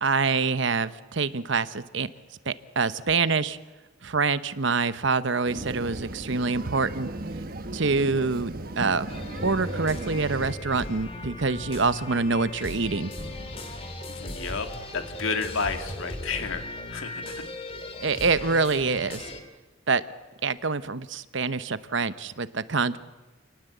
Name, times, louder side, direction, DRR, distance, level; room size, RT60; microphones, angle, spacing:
voice 1, 0.0-2.1 2.5-3.6 4.0-7.1 7.7-9.1 9.4-13.1 18.0-19.3 19.9-20.0 20.4-23.0, right 4 dB, 60° right, 14 dB, 0.9 m, -26 dB
sound 1, 5.4-10.5, right 1 dB, 45° right, 1.3 m, -36 dB
sound 2, 9.1-19.4, left 1 dB, 30° left, 2.6 m, -38 dB
sound 3, 10.4-14.7, equal, 85° right, 5.2 m, -48 dB
voice 2, 14.1-14.7 14.9-17.4 18.3-18.4, left 4 dB, 75° left, 7 dB, 2.0 m, -31 dB
28.0 x 18.5 x 8.0 m, 1.2 s
head